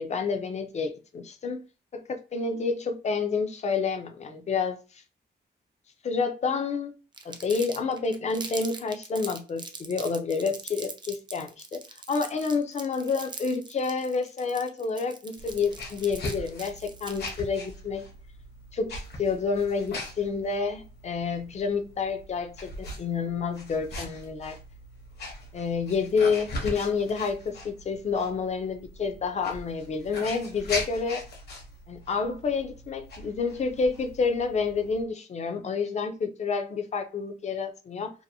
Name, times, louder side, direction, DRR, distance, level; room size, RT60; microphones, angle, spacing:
voice 1, 0.0-1.6 1.9-4.8 6.0-6.9 7.2-11.8 12.1-18.0 18.7-24.6 25.5-31.2 31.9-38.1, left 5 dB, 40° left, 0.5 m, -29 dB
Crumpling crinkling, 7.1-17.4, right 4 dB, 25° right, 0.4 m, -41 dB
sound 1, 15.4-35.0, left 1 dB, 65° left, 1.0 m, -40 dB
2.8 x 2.5 x 2.6 m
wide cardioid pair, 150°, 18 cm